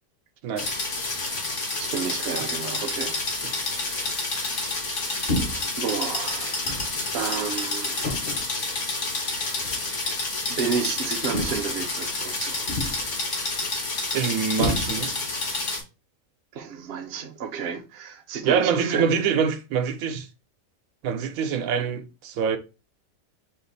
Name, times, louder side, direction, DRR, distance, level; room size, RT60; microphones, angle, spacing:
sound 1, 0.6-15.8, left 2 dB, 60° left, 1.5 m, -29 dB
voice 1, 1.8-3.2 3.5-5.0 5.8-8.2 9.5-10.0 10.5-12.8 16.5-19.1, right 6 dB, 55° right, 0.8 m, -32 dB
sound 2, 5.3-5.8 6.6-7.0 8.0-8.5 9.6-9.8 11.3-11.8 12.7-13.2 14.6-15.3, left 1 dB, 45° left, 1.0 m, -30 dB
voice 2, 14.1-15.2 18.4-20.3 21.0-22.6, right 6 dB, 85° right, 1.0 m, -25 dB
4.2 x 2.4 x 3.9 m
omnidirectional pair, 1.4 m